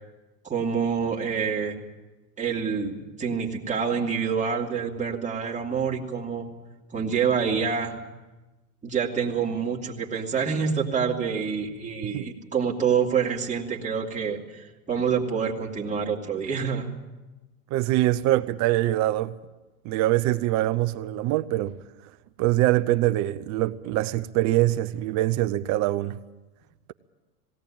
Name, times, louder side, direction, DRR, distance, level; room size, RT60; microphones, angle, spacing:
voice 1, 0.5-1.8 2.4-6.5 6.9-8.0 8.8-16.9, right 6 dB, 15° right, 2.9 m, -27 dB
voice 2, 17.7-19.4 19.8-21.8 22.4-26.2, right 15 dB, 40° right, 0.8 m, -24 dB
19.5 x 17.5 x 8.9 m
hypercardioid pair, 110°, 44 cm